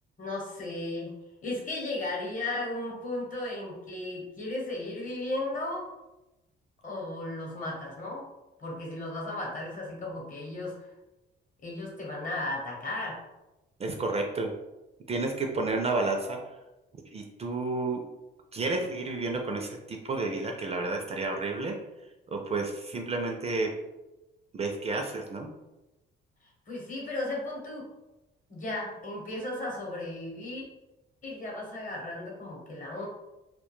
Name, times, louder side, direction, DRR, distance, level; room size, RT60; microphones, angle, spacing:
voice 1, 0.2-1.1 1.4-5.9 6.8-8.2 8.6-10.9 11.6-13.2 26.7-27.9 28.5-30.6 31.2-33.1, left 2 dB, 40° left, -1 dB, 0.8 m, -35 dB
voice 2, 13.8-14.5 15.1-16.4 17.1-18.0 18.5-21.7 22.3-23.7 24.5-25.5, right 3 dB, 30° right, 2 dB, 0.3 m, -31 dB
2.2 x 2.1 x 3.0 m, 1.0 s
cardioid pair, 90°, 20 cm